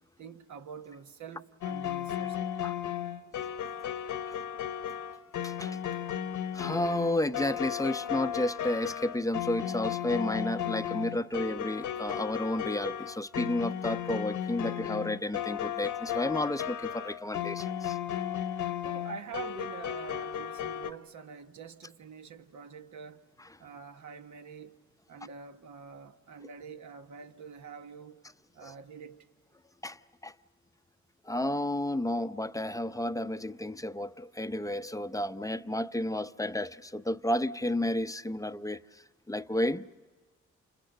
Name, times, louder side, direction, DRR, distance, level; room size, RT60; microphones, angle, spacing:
voice 1, 0.2-2.5 14.6-14.7 18.1-18.2 18.8-23.3 23.6-24.8 25.1-28.2 28.5-29.3, right 6 dB, 65° right, 1.4 m, -46 dB
sound 1, 1.6-20.9, left 10 dB, 75° left, 1.2 m, -35 dB
voice 2, 5.4-5.8 6.5-18.0 28.6-28.7 29.8-30.3 31.2-39.9, left 1 dB, 10° left, 0.7 m, -32 dB
29.5 x 27.5 x 6.8 m
supercardioid pair, 50°, 32 cm